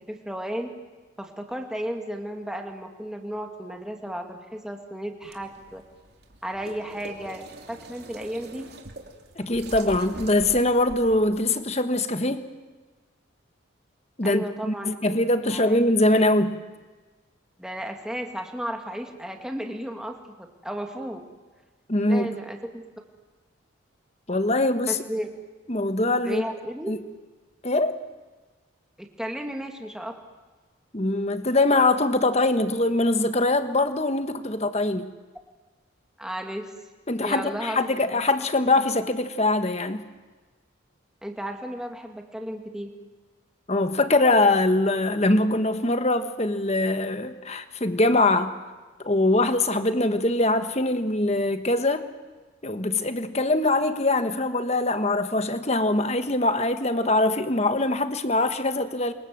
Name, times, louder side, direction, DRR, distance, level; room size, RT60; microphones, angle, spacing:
voice 1, 0.1-0.7 1.2-5.8 6.4-8.7 14.2-14.9 15.5-15.8 17.6-21.2 22.1-22.6 24.9-25.3 26.2-26.9 29.0-30.1 36.2-36.7 37.2-37.8 38.1-38.2 41.2-42.9, equal, 5° right, 3 dB, 2.4 m, -34 dB
sound 1, 5.2-11.4, right 1 dB, 50° right, 2.9 m, -43 dB
voice 2, 9.4-12.5 14.2-16.6 21.9-22.3 24.3-25.0 25.7-26.4 26.9-27.0 27.6-28.0 30.9-35.1 37.1-40.1 43.7-48.5 49.0-52.1 52.6-59.1, left 2 dB, 30° left, 9 dB, 1.4 m, -23 dB
29.0 x 25.5 x 7.8 m, 1.3 s
head